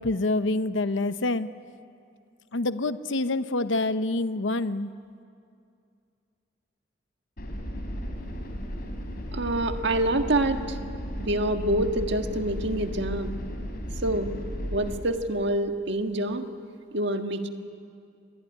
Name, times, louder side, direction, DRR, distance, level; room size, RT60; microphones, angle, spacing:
voice 1, 0.0-1.5 2.5-4.9, left 2 dB, 75° left, 12 dB, 0.8 m, -26 dB
sound 1, 7.4-15.0, equal, 55° left, 4.3 m, -34 dB
voice 2, 9.3-10.8 11.2-13.3 14.0-14.3 14.7-16.5 16.9-17.5, right 1 dB, 65° right, 6 dB, 1.6 m, -26 dB
26.5 x 21.5 x 9.9 m, 2.4 s
head